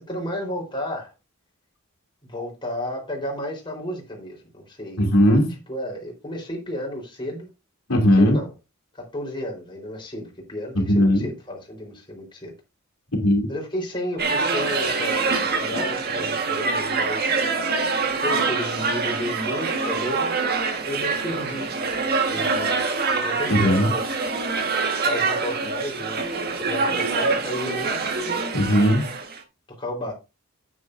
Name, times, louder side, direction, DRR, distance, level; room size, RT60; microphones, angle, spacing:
voice 1, 0.1-1.1 2.3-5.0 5.5-7.5 8.2-8.5 8.9-12.5 13.5-17.4 18.2-20.4 20.8-21.7 22.0-24.2 25.1-26.2 26.6-28.0 29.8-30.1, equal, 20° left, 4.1 m, -32 dB
voice 2, 5.0-5.5 7.9-8.4 10.7-11.3 13.1-13.5 23.5-23.9 28.5-29.0, equal, 75° left, 2.8 m, -18 dB
sound 1, 14.2-29.4, right 4 dB, 45° right, 1.5 m, -25 dB
9.5 x 9.2 x 2.6 m
head